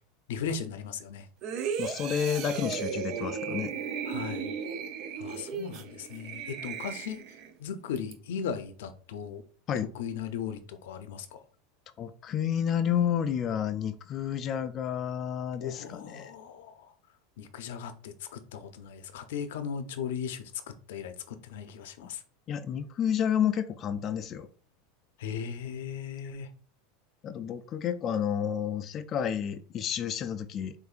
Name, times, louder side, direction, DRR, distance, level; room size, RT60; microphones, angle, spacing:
voice 1, 0.3-1.3 4.0-4.5 5.2-7.2 7.6-9.4 9.9-11.4 15.6-16.9 17.4-20.5 20.9-22.2 25.2-26.5, left 7 dB, 80° left, 0.6 m, -37 dB
sound 1, 1.4-7.5 8.0-8.1, right 7 dB, 50° right, 0.6 m, -35 dB
voice 2, 1.8-3.7 9.7-9.9 12.0-16.3 22.5-24.5 27.2-30.7, left 9 dB, 35° left, 0.3 m, -30 dB
6.7 x 2.6 x 2.5 m
supercardioid pair, 125°, 0 cm